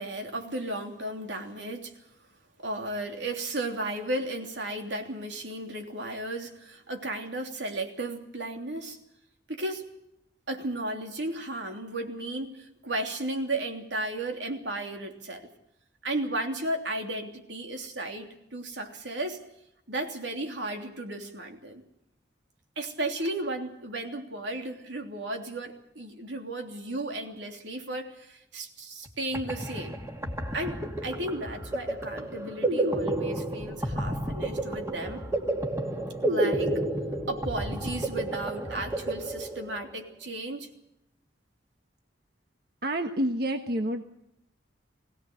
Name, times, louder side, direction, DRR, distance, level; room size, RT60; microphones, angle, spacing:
voice 1, 0.0-1.9 2.6-9.0 9.5-9.9 10.5-15.5 16.0-19.4 19.9-21.8 22.8-30.0 30.5-35.2 36.3-36.8 37.3-40.7, right 1 dB, 90° right, 3 dB, 3.3 m, -34 dB
sound 1, 29.1-29.2 29.3-39.9, right 1 dB, 15° right, 2.3 m, -31 dB
voice 2, 42.8-44.0, right 1 dB, 60° right, 5 dB, 1.4 m, -28 dB
21.5 x 17.5 x 8.0 m, 0.82 s
head